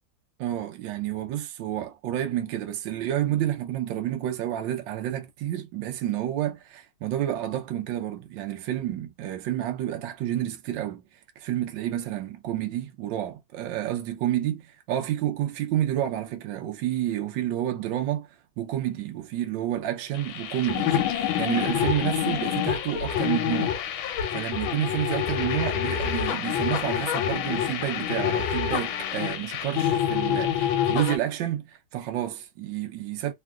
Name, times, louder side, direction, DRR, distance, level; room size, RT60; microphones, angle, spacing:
voice 1, 0.4-11.0 11.4-18.3 18.6-23.8 24.0-33.3, right 12 dB, 70° right, 1.2 m, -29 dB
sound 1, 20.1-31.2, left 10 dB, 80° left, 1.3 m, -27 dB
3.5 x 2.3 x 2.3 m
omnidirectional pair, 2.3 m